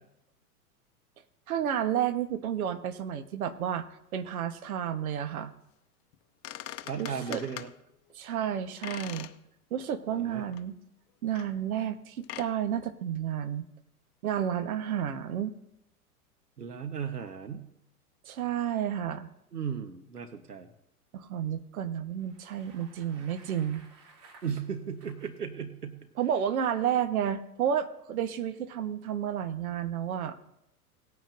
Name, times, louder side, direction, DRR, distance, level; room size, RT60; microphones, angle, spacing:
voice 1, 1.5-5.5 7.0-7.4 8.1-9.3 9.7-10.8 11.2-13.7 14.2-15.5 18.2-19.3 21.1-23.8 26.2-30.4, right 9 dB, 65° right, 9 dB, 1.3 m, -31 dB
sound 1, 6.1-6.2 6.4-7.7 8.8-9.4 9.8-9.9 10.5-10.6 11.4-11.5 12.2-12.5, left 14 dB, 40° left, 0.8 m, -41 dB
voice 2, 6.8-7.7 10.1-10.4 16.6-17.6 19.5-20.7 24.4-26.0, right 7 dB, 85° right, 8 dB, 1.2 m, -36 dB
Bicycle, 22.1-25.4, right 3 dB, 40° right, 3.1 m, -56 dB
19.0 x 9.1 x 2.6 m, 0.80 s
figure-of-eight pair, 95°, 46 cm